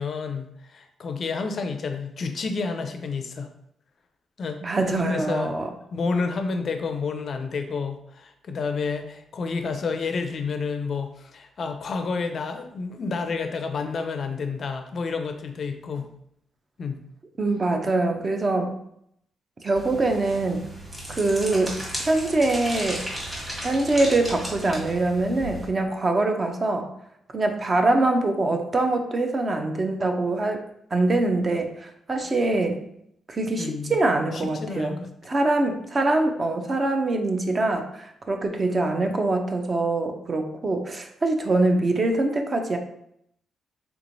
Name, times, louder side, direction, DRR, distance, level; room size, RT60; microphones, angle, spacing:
voice 1, 0.0-3.5 4.4-4.8 5.1-5.5 5.9-16.1 16.8-17.0 33.6-34.0 34.3-35.1, left 4 dB, 50° left, 7 dB, 0.4 m, -30 dB
voice 2, 4.6-5.7 17.4-18.8 19.6-20.7 21.1-23.0 23.6-26.9 27.3-30.6 30.9-32.9 33.3-35.0 35.2-42.8, right 2 dB, 30° right, 4 dB, 0.4 m, -24 dB
sound 1, 19.8-25.7, equal, 15° right, 1.2 m, -35 dB
3.4 x 3.0 x 2.6 m, 0.73 s
cardioid pair, 120°, 0 cm